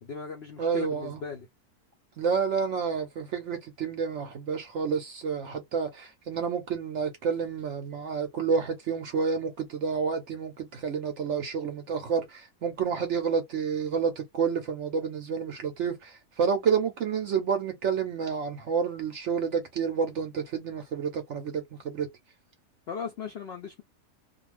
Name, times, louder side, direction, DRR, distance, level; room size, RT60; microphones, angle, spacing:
voice 1, 0.0-1.5 22.9-23.8, left 6 dB, 75° left, 0.5 m, -38 dB
voice 2, 0.6-1.2 2.2-22.1, right 6 dB, 65° right, 0.7 m, -29 dB
2.4 x 2.3 x 3.1 m
omnidirectional pair, 1.7 m